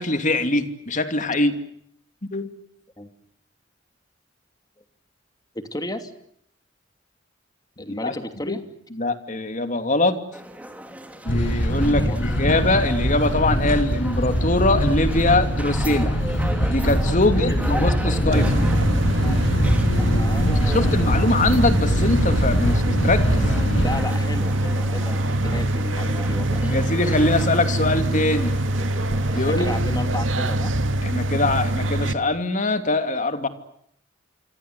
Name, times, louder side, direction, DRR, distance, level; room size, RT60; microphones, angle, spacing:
voice 1, 0.0-1.6 2.3-2.5 8.0-8.2 8.5-8.6 8.9-10.2 11.2-16.2 16.7-18.5 20.7-23.5 26.6-28.5 29.3-29.7 31.0-33.5, left 2 dB, 40° left, 9 dB, 2.8 m, -22 dB
voice 2, 5.5-6.1 7.8-8.6 11.8-12.2 17.2-17.8 18.1-18.8 20.2-21.3 23.8-26.8 29.3-30.7, left 1 dB, 20° left, 8 dB, 2.8 m, -33 dB
sound 1, 10.3-29.8, right 1 dB, 10° right, 2.9 m, -38 dB
sound 2, 11.3-24.0, equal, 80° left, 7.1 m, -22 dB
sound 3, 18.3-32.1, right 1 dB, 90° right, 2.1 m, -23 dB
27.5 x 25.5 x 8.2 m, 0.70 s
head